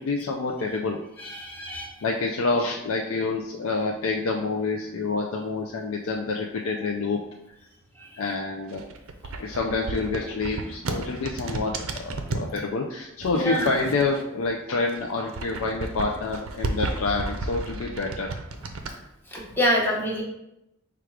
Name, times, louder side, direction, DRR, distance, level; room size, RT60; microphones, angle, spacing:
voice 1, 0.0-1.0 2.0-7.2 8.2-8.8 9.4-18.3, left 3 dB, 65° left, 0 dB, 0.4 m, -27 dB
voice 2, 1.2-2.0 8.0-8.2 13.3-13.7 19.3-20.2, equal, 10° left, -3 dB, 0.8 m, -26 dB
sound 1, 8.6-12.5 13.2-14.5 14.8-18.9, right 3 dB, 65° right, 0.5 m, -33 dB
4.9 x 2.3 x 4.6 m, 0.87 s
head